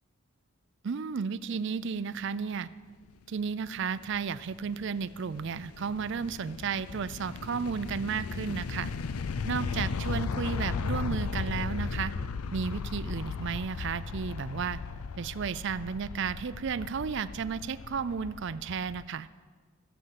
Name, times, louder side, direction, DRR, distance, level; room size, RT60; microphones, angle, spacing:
voice 1, 0.8-2.7 3.3-8.9 9.5-12.1 12.5-14.8 15.2-19.3, right 6 dB, 55° right, 15 dB, 0.4 m, -33 dB
sound 1, 3.5-19.1, left 5 dB, 85° left, 0.5 m, -36 dB
14.0 x 7.8 x 7.6 m, 1.5 s
head